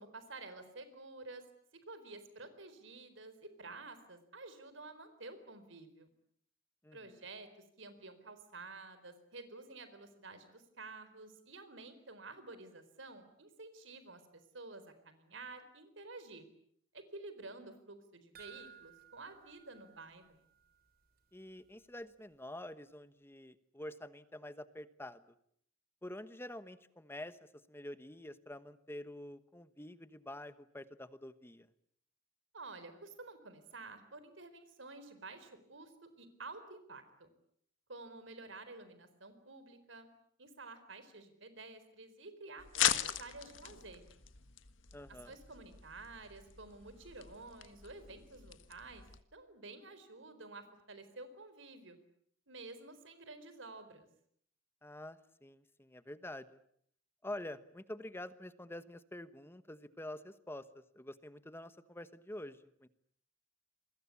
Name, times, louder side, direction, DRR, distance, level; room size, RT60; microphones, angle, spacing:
voice 1, 0.0-1.4 1.7-6.1 6.9-16.5 16.9-20.4 32.5-37.3 37.9-40.1 40.4-42.7 42.9-44.0 45.1-49.0 49.3-52.0 52.5-54.1, right 3 dB, 75° right, 11 dB, 4.2 m, -51 dB
voice 2, 6.8-7.2 21.3-25.2 26.0-31.7 44.9-45.4 54.8-56.6 57.2-62.9, left 1 dB, 10° left, 13 dB, 1.2 m, -47 dB
sound 1, 18.4-20.9 21.2-21.3 21.7-21.8, right 8 dB, 50° right, 3.6 m, -58 dB
sound 2, 42.6-49.2, left 10 dB, 80° left, 1.6 m, -39 dB
28.0 x 22.5 x 8.4 m, 0.67 s
head